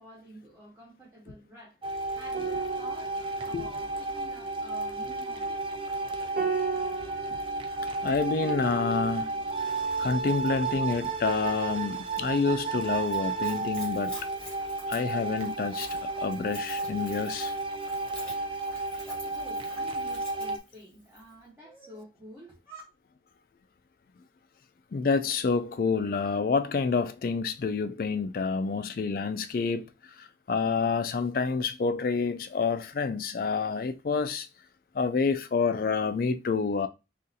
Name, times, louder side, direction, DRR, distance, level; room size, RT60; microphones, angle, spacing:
voice 1, 0.0-5.6 19.3-22.8, right 1 dB, 15° right, 0.9 m, -49 dB
sound 1, 1.8-20.6, right 3 dB, 30° right, 0.3 m, -33 dB
sound 2, 2.3-11.0 11.3-11.5, right 5 dB, 65° right, 0.7 m, -38 dB
voice 2, 8.0-9.3 10.0-14.1 14.9-15.9 16.2-17.5 24.9-29.9 30.2-34.5 34.9-36.9, left 4 dB, 50° left, 0.3 m, -28 dB
Splash splatter / Trickle dribble, 13.0-21.3, left 1 dB, 5° left, 1.3 m, -48 dB
3.8 x 2.5 x 2.7 m
head